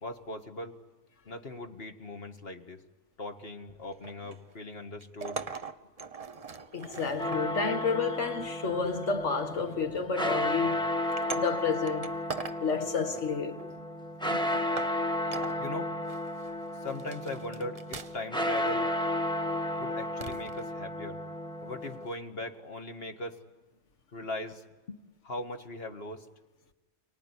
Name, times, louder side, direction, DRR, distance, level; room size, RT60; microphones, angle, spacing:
voice 1, 0.0-0.8 1.3-2.8 3.2-5.4 13.8-13.9 14.2-14.6 15.6-15.9 16.8-18.9 19.8-21.2 21.6-23.4 24.1-25.0 25.2-26.3, left 2 dB, 55° left, 1.8 m, -40 dB
sound 1, 3.7-4.6 5.0-7.4 8.4-9.1 9.6-9.8 10.3-10.5 11.0-12.6 12.9-13.8 14.3-14.4 14.8-15.0 15.3-15.6 16.1-16.5 16.9-18.4 18.6-18.8 20.2-20.6 22.1-22.2, right 5 dB, 35° right, 0.9 m, -42 dB
voice 2, 6.7-10.9 11.3-12.1 12.6-13.6, left 5 dB, 75° left, 1.9 m, -30 dB
sound 2, 7.2-22.1, left 1 dB, 5° left, 1.3 m, -33 dB
29.0 x 19.5 x 9.8 m
omnidirectional pair, 1.2 m